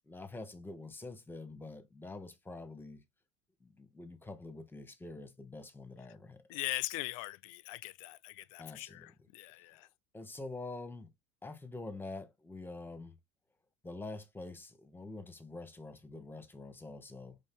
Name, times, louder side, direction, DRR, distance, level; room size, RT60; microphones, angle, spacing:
voice 1, 0.1-3.0 3.6-6.4 8.6-9.1 10.1-11.1 11.4-13.2 13.8-17.4, left 2 dB, 10° left, 1.0 m, -46 dB
voice 2, 6.5-9.1 9.3-9.8, left 19 dB, 70° left, 0.4 m, -40 dB
5.3 x 2.6 x 3.7 m
hypercardioid pair, 90°, 18 cm